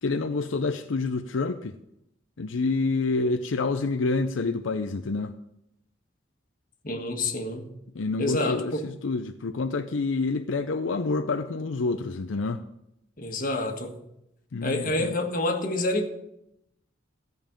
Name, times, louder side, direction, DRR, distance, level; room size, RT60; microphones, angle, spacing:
voice 1, 0.0-1.8 2.4-5.4 7.9-12.6 14.5-15.2, left 3 dB, 85° left, 0.6 m, -28 dB
voice 2, 6.8-7.7 8.2-8.8 13.2-14.0 14.6-16.1, left 2 dB, 45° left, 1.6 m, -28 dB
15.0 x 5.4 x 8.9 m
head